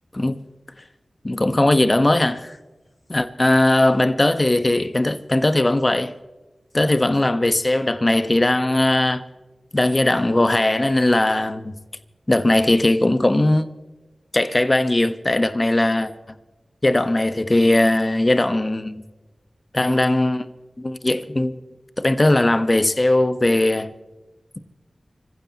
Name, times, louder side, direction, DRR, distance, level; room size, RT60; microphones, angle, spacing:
voice 1, 1.2-2.6 3.1-6.1 6.7-9.2 9.7-11.7 12.3-13.7 14.3-16.1 16.8-19.0 19.7-20.5 20.8-21.6 22.0-23.9, left 1 dB, 35° left, 1.2 m, -19 dB
26.0 x 15.5 x 3.0 m
cardioid pair, 40°, 0 cm